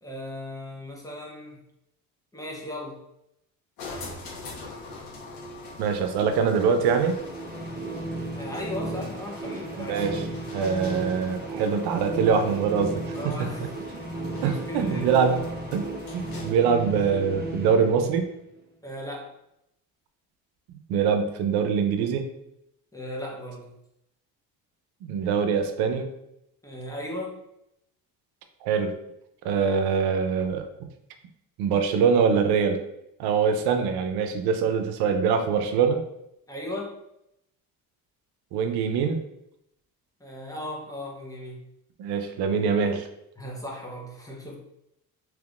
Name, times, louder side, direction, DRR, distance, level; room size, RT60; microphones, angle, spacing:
voice 1, 0.0-1.6 2.3-3.0 8.3-10.2 13.1-14.1 14.4-15.1 18.8-19.4 22.9-23.7 26.6-27.4 36.5-37.0 40.2-41.6 43.4-44.6, left 1 dB, 10° left, -2 dB, 0.7 m, -37 dB
sound 1, 3.8-16.7, left 2 dB, 75° left, 1.2 m, -42 dB
voice 2, 5.8-7.2 9.8-10.2 10.5-13.0 14.4-15.4 15.7-15.8 16.1-18.3 20.9-22.2 25.0-26.1 28.6-28.9 29.4-30.7 31.6-32.8 33.2-36.0 38.5-39.2 42.0-43.1, right 6 dB, 85° right, 6 dB, 0.6 m, -23 dB
sound 2, 6.7-18.6, right 2 dB, 25° right, 0.6 m, -35 dB
3.5 x 3.0 x 2.4 m, 0.81 s
cardioid pair, 125°, 37 cm